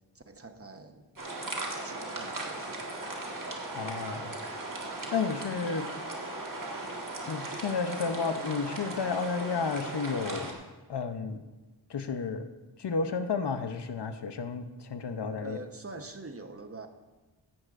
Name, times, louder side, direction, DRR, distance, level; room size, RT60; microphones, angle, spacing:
voice 1, 0.1-1.1 1.8-2.7 15.4-16.9, right 2 dB, 30° right, 6 dB, 1.1 m, -44 dB
sound 1, 1.1-10.5, right 2 dB, 50° right, 1.8 m, -37 dB
voice 2, 3.7-4.3 5.1-5.9 7.3-10.6 10.9-11.4 11.9-12.5 12.8-15.6, left 5 dB, 65° left, 8 dB, 0.8 m, -32 dB
16.0 x 11.0 x 2.6 m, 1.2 s
wide cardioid pair, 60°, 43 cm